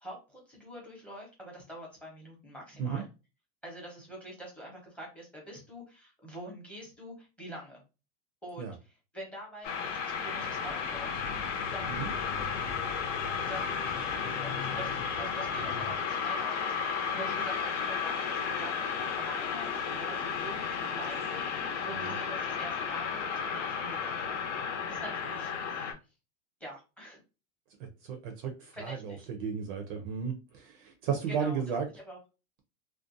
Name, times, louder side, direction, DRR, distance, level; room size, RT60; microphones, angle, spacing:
voice 1, 0.0-3.0 3.6-7.8 8.4-8.7 9.1-11.2 11.7-12.0 13.4-24.5 24.9-25.5 26.6-27.2 28.7-29.3 31.3-31.6 31.9-32.2, equal, 5° left, -1 dB, 0.7 m, -45 dB
sound 1, 9.6-25.9, left 6 dB, 65° left, 0.8 m, -33 dB
sound 2, 10.4-16.0, left 4 dB, 50° left, 0.4 m, -43 dB
voice 2, 27.8-31.9, right 7 dB, 45° right, 5 dB, 0.5 m, -34 dB
2.5 x 2.2 x 2.5 m, 0.29 s
supercardioid pair, 155°, 38 cm